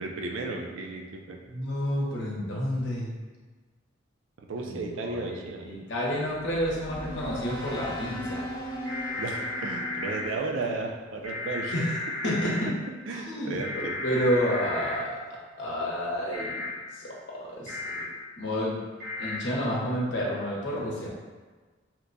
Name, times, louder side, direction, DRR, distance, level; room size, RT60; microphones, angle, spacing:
voice 1, 0.0-1.4 4.4-5.7 9.2-11.7 13.1-13.9, right 3 dB, 80° right, 2 dB, 0.4 m, -34 dB
voice 2, 1.5-3.1 4.6-8.5 11.7-11.9 12.2-12.7 13.1-16.7 16.9-18.1 18.4-18.8 19.2-21.1, equal, 60° left, -4 dB, 0.8 m, -30 dB
sound 1, 6.4-11.4, equal, 20° left, 0.6 m, -38 dB
sound 2, 8.9-10.2 11.2-12.6 13.6-15.0 16.3-16.7 17.7-18.0 19.0-19.4, left 2 dB, 55° right, 1.0 m, -34 dB
2.9 x 2.2 x 3.7 m, 1.4 s
head